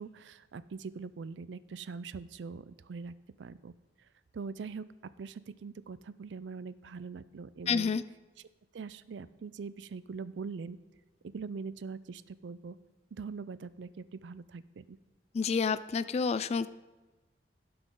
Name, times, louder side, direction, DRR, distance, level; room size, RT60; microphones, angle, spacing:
voice 1, 0.0-4.1 4.3-7.9 8.7-10.8 11.2-12.8 13.1-15.0, right 5 dB, 85° right, 16 dB, 0.4 m, -42 dB
voice 2, 7.7-8.0 15.3-16.7, left 5 dB, 35° left, 16 dB, 0.3 m, -29 dB
17.0 x 6.1 x 3.8 m, 1.2 s
head